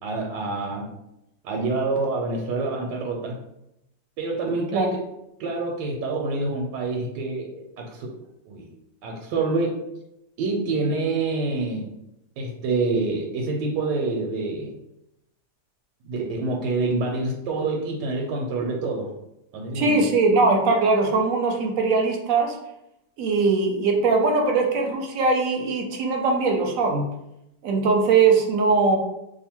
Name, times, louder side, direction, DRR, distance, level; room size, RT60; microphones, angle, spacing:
voice 1, 0.0-0.9 1.4-3.4 4.2-5.0 5.4-8.1 8.5-8.7 9.0-9.8 10.4-11.9 12.4-14.8 16.0-19.1 19.5-19.9, right 3 dB, 90° right, 0 dB, 1.3 m, -27 dB
voice 2, 19.7-22.6 23.2-27.1 27.6-29.0, right 4 dB, 65° right, 2 dB, 0.9 m, -21 dB
2.8 x 2.5 x 4.3 m, 0.85 s
omnidirectional pair, 1.8 m